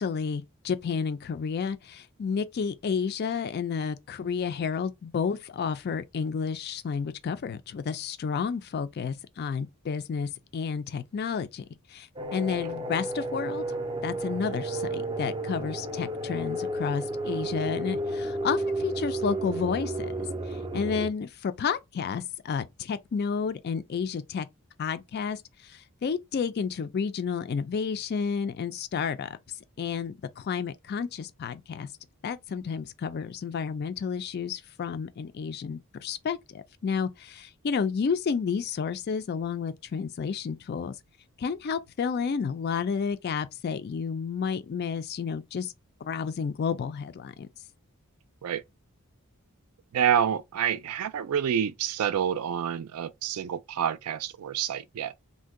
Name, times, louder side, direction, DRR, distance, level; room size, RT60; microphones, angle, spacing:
voice 1, 0.0-13.6 14.0-20.1 20.5-24.5 24.8-29.4 29.8-31.9 32.2-40.9 41.4-45.7 46.0-47.5, left 6 dB, 45° left, 0.3 m, -31 dB
sound 1, 12.2-21.1, right 1 dB, 20° right, 0.4 m, -32 dB
voice 2, 49.9-55.1, right 9 dB, 80° right, 0.4 m, -28 dB
2.6 x 2.2 x 3.6 m
head